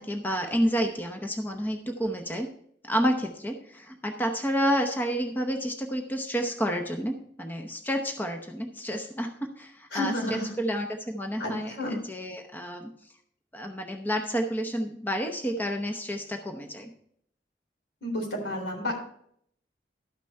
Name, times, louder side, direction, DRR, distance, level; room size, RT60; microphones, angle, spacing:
voice 1, 0.0-2.5 2.9-12.9 13.5-16.9, equal, 10° left, 4 dB, 0.8 m, -30 dB
voice 2, 9.9-10.5 11.4-12.0 18.0-19.0, left 1 dB, 80° left, 0 dB, 3.8 m, -31 dB
12.5 x 6.0 x 4.5 m, 0.67 s
head